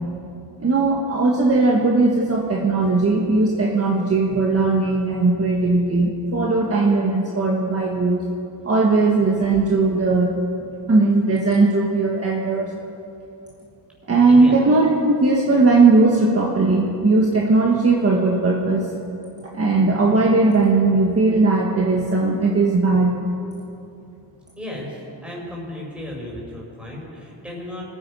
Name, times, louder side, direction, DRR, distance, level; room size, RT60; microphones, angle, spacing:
voice 1, 0.6-8.2 8.6-10.3 10.6-12.7 14.1-18.9 19.5-23.2, right 3 dB, 35° right, -2 dB, 1.6 m, -18 dB
voice 2, 14.2-14.7 24.5-27.8, left 1 dB, 5° right, -4 dB, 5.1 m, -34 dB
25.5 x 9.9 x 5.6 m, 2.7 s
wide cardioid pair, 140°, 43 cm